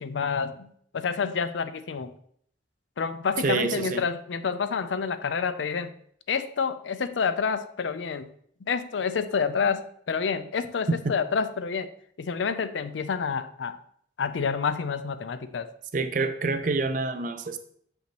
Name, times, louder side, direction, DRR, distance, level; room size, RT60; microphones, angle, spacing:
voice 1, 0.0-2.1 3.0-5.9 6.3-8.3 8.7-11.9 12.2-13.8 14.2-15.7, left 5 dB, 90° left, 12 dB, 0.5 m, -28 dB
voice 2, 3.4-4.0 11.0-11.1 15.9-17.6, right 3 dB, 45° right, 10 dB, 0.5 m, -27 dB
6.7 x 5.4 x 3.0 m, 0.65 s
head